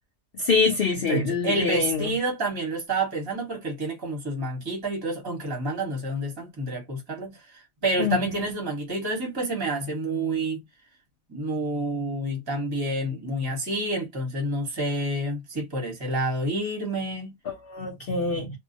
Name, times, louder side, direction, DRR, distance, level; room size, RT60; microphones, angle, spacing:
voice 1, 0.4-2.1 8.0-8.2 17.5-18.6, left 4 dB, 55° left, 0.6 m, -25 dB
voice 2, 1.1-7.4 7.8-10.6 11.3-17.3, right 2 dB, 20° right, 0.7 m, -28 dB
2.5 x 2.0 x 2.6 m
omnidirectional pair, 1.5 m